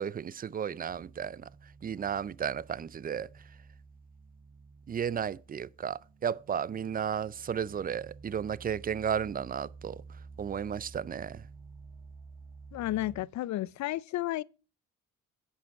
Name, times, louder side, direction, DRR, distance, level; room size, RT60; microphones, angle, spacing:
voice 1, 0.0-1.4 1.8-3.3 4.9-10.0 10.4-11.4, right 8 dB, 30° right, 0.4 m, -33 dB
sound 1, 0.9-13.2, right 4 dB, 90° right, 1.6 m, -52 dB
voice 2, 12.7-14.4, left 15 dB, 70° left, 0.5 m, -32 dB
10.5 x 7.7 x 4.6 m
cardioid pair, 90°, 30 cm